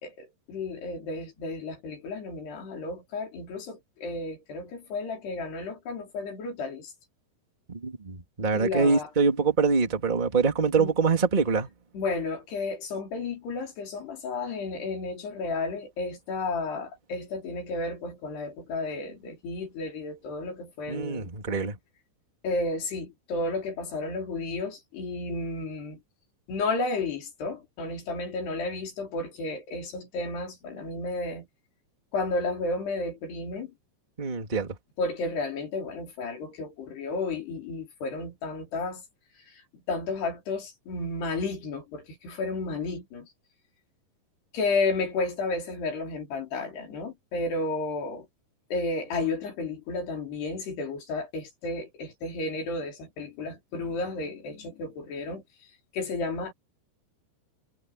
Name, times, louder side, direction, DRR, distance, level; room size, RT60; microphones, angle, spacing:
voice 1, 0.0-6.9 8.5-9.1 10.8-10.9 11.9-21.3 22.4-26.0 26.5-31.5 32.1-33.7 35.0-39.0 39.9-43.3 44.5-48.3 48.7-55.4 55.9-56.5, left 3 dB, 70° left, 6.8 m, -32 dB
voice 2, 7.7-11.7 20.9-21.7 34.2-34.7, right 5 dB, 15° right, 2.0 m, -25 dB
omnidirectional pair, 4.8 m